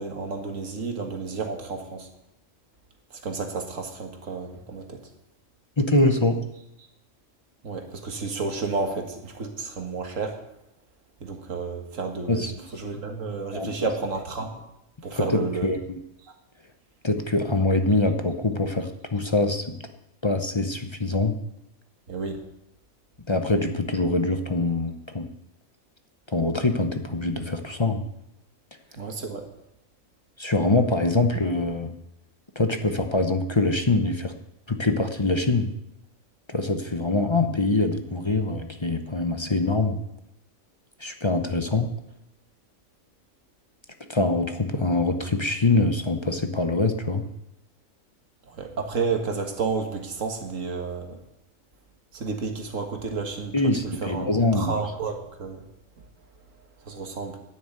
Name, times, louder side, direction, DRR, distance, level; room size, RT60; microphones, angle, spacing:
voice 1, 0.0-2.1 3.2-5.0 7.6-10.4 11.2-12.5 12.7-14.6 15.0-15.7 22.1-22.4 29.0-29.5 48.5-51.2 52.1-53.5 53.8-55.6 56.9-57.4, right 4 dB, 70° right, 4 dB, 2.0 m, -31 dB
voice 2, 5.8-6.4 12.3-12.5 13.5-13.9 15.1-15.8 17.0-19.8 20.2-21.3 23.3-25.3 26.3-28.0 30.4-31.9 32.6-34.3 34.7-35.7 36.5-40.0 41.0-41.9 44.1-47.2 53.5-54.8, left 2 dB, 25° left, 6 dB, 0.7 m, -24 dB
11.0 x 6.5 x 9.1 m, 0.84 s
omnidirectional pair, 1.4 m